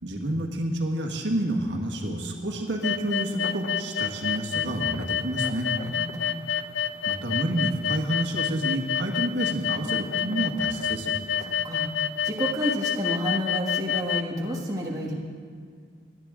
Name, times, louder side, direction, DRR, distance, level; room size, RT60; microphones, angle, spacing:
voice 1, 0.0-5.7 6.5-6.6 7.1-11.1, right 1 dB, 75° right, 1 dB, 1.6 m, -29 dB
sound 1, 2.8-14.2, left 9 dB, 90° left, 0.5 m, -28 dB
voice 2, 5.8-6.4 11.4-15.1, equal, 20° right, -2 dB, 1.4 m, -30 dB
19.0 x 11.0 x 3.7 m, 2.1 s
head